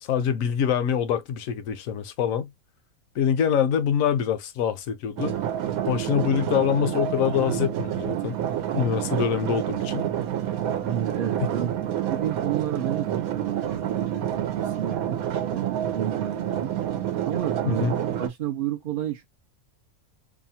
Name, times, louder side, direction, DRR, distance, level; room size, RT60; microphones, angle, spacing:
voice 1, 0.0-2.5 3.1-5.3 5.8-8.4 8.7-10.1 11.4-11.5 17.6-18.0, left 8 dB, 70° left, 1.0 m, -25 dB
sound 1, 5.2-18.3, right 10 dB, 85° right, 1.1 m, -28 dB
voice 2, 9.1-9.6 10.9-11.7 12.1-15.2 15.5-16.7 17.2-19.3, right 10 dB, 65° right, 0.5 m, -31 dB
2.8 x 2.3 x 2.7 m
omnidirectional pair, 1.5 m